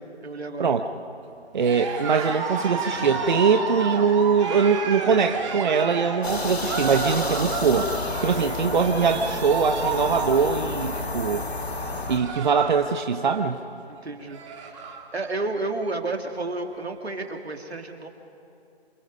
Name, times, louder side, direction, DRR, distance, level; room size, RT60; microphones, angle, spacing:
voice 1, 0.2-0.7 7.2-7.5 13.9-14.8 15.1-18.1, right 2 dB, 80° right, 4 dB, 2.6 m, -31 dB
Cheering, 1.5-12.8 13.1-13.5 14.0-14.1 14.2-15.1, right 4 dB, 30° right, 2.3 m, -32 dB
voice 2, 1.5-7.9 8.2-11.4 12.1-13.6, right 6 dB, 45° right, 6 dB, 0.9 m, -22 dB
Thunder, 2.3-12.9, equal, 5° left, 0.8 m, -45 dB
sound 1, 6.2-12.2, left 3 dB, 80° left, 2.1 m, -31 dB
27.0 x 24.0 x 5.4 m, 2.7 s
figure-of-eight pair, 155°, 32 cm